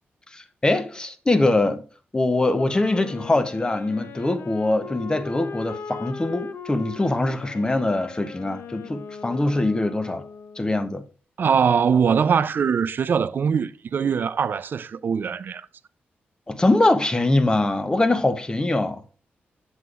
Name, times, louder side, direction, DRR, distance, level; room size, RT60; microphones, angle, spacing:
voice 1, 0.3-1.8 2.1-10.2 10.6-11.0 16.5-19.0, left 2 dB, 20° left, 0.8 m, -23 dB
Wind instrument woodwind instrument, 2.4-10.7, left 5 dB, 75° left, 0.5 m, -39 dB
voice 2, 11.4-15.7, right 6 dB, 60° right, 0.4 m, -22 dB
8.0 x 7.5 x 2.4 m
cardioid pair, 80°, 4 cm